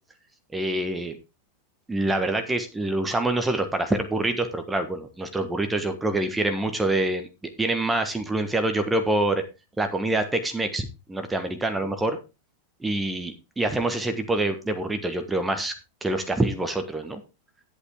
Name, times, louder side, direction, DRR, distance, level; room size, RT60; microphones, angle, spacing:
voice 1, 0.5-1.2 1.9-7.3 7.6-9.4 9.8-12.1 12.8-15.7 16.0-17.2, right 2 dB, 10° right, 7 dB, 1.4 m, -26 dB
11.5 x 8.3 x 3.6 m, 0.28 s
figure-of-eight pair, 90°, 0 cm